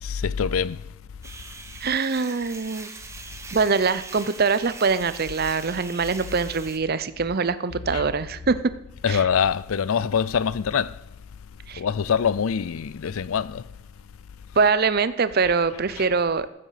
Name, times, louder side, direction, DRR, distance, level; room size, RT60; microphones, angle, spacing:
voice 1, 0.0-0.8 7.9-8.1 9.0-11.0 11.8-13.6 16.0-16.1, left 7 dB, 75° left, 0.4 m, -24 dB
sound 1, 1.2-6.8, right 3 dB, 15° right, 1.0 m, -41 dB
voice 2, 1.8-2.9 3.5-8.6 9.1-9.2 11.7-11.8 14.6-16.5, right 4 dB, 45° right, 0.6 m, -23 dB
14.5 x 7.7 x 5.7 m
head